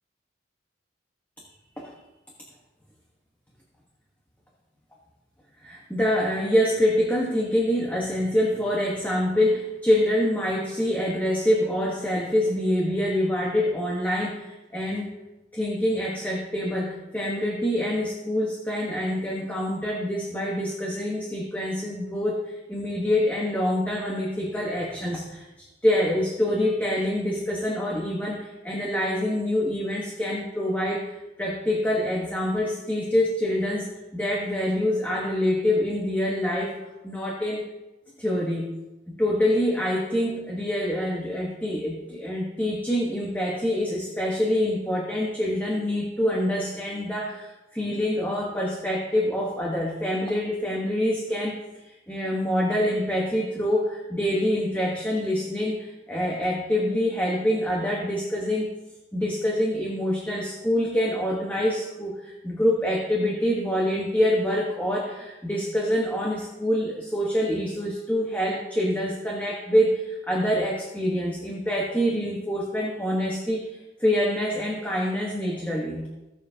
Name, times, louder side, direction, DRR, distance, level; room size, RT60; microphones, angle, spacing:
voice 1, 5.6-15.1 15.5-25.4 25.8-33.9 34.1-36.7 37.0-37.6 38.2-38.7 39.1-58.7 59.1-73.6 74.0-76.1, left 1 dB, 10° left, -3 dB, 1.2 m, -26 dB
16.0 x 7.0 x 2.9 m, 1.0 s
head